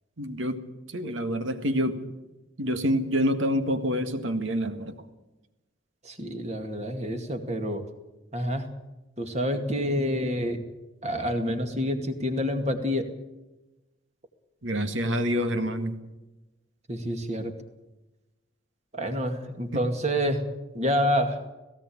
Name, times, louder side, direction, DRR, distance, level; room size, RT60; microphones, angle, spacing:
voice 1, 0.2-0.6 0.9-2.0 2.6-5.0 14.6-16.0, equal, 75° right, 9 dB, 1.9 m, -27 dB
voice 2, 6.0-7.8 8.3-8.7 9.2-10.6 11.0-13.1 16.9-17.5 18.9-20.4 20.7-21.4, equal, 35° right, 5 dB, 2.3 m, -28 dB
18.0 x 16.5 x 8.8 m, 1.0 s
head